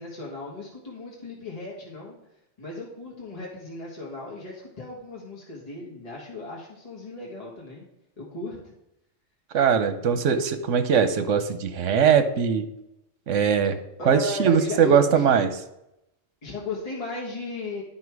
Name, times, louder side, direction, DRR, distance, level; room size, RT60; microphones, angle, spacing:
voice 1, 0.0-2.2 2.6-7.9 8.2-8.7 14.0-15.3 16.4-17.8, left 2 dB, 30° left, -4 dB, 1.7 m, -35 dB
voice 2, 9.5-12.7 13.3-13.8 14.1-15.5, right 7 dB, 80° right, 9 dB, 1.1 m, -21 dB
10.5 x 5.6 x 4.7 m, 0.85 s
omnidirectional pair, 1.3 m